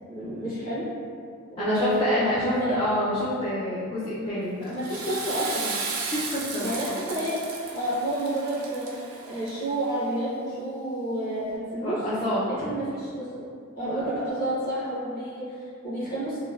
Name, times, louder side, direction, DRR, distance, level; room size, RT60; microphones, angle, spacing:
voice 1, 0.1-0.8 1.6-2.3 2.5-2.7 4.7-5.7 6.6-7.4 7.7-12.0 12.5-13.5 13.8-16.4, right 1 dB, 45° left, -11 dB, 1.1 m, -30 dB
voice 2, 1.6-4.8 6.1-6.7 11.8-12.5 13.8-14.1, equal, 25° left, -12 dB, 0.4 m, -27 dB
Water / Toilet flush, 4.6-9.9, right 4 dB, 80° right, 0.4 m, -35 dB
3.1 x 2.1 x 2.3 m, 2.2 s
head